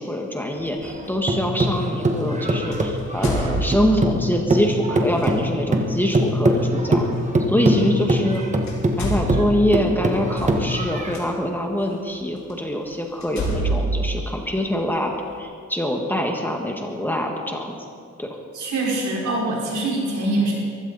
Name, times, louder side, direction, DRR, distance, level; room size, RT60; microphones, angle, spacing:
voice 1, 0.0-7.1 7.5-8.4 9.0-17.8 18.2-18.3, equal, 5° left, 1 dB, 1.7 m, -24 dB
sound 1, 0.6-0.8 2.7-4.2 5.1-5.3 7.2-7.3 8.2-8.4 8.6-11.2 11.9-12.0 12.5-12.6 13.2-15.0, right 1 dB, 70° left, 3.8 m, -27 dB
sound 2, 0.8-4.2 4.5-11.2, right 1 dB, 25° right, 1.6 m, -22 dB
voice 2, 7.6-8.0 18.5-20.5, right 1 dB, 80° right, -4 dB, 5.6 m, -23 dB
22.5 x 15.5 x 4.2 m, 2.2 s
wide cardioid pair, 120°, 30 cm